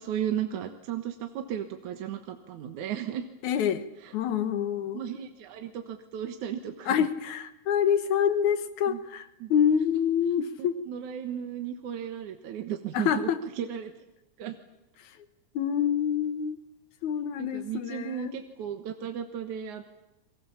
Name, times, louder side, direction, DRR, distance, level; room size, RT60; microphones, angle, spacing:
voice 1, 0.0-3.2 4.0-4.1 4.9-7.0 8.9-9.0 9.4-9.5 10.9-13.3 13.6-13.9 14.4-14.6 17.4-19.8, right 9 dB, 70° right, 6 dB, 2.7 m, -35 dB
voice 2, 3.4-3.9 4.1-5.0 6.9-10.8 12.9-13.4 15.5-16.6 17.0-18.4, left 8 dB, 70° left, 11 dB, 2.7 m, -26 dB
29.0 x 23.5 x 7.2 m, 0.89 s
omnidirectional pair, 3.6 m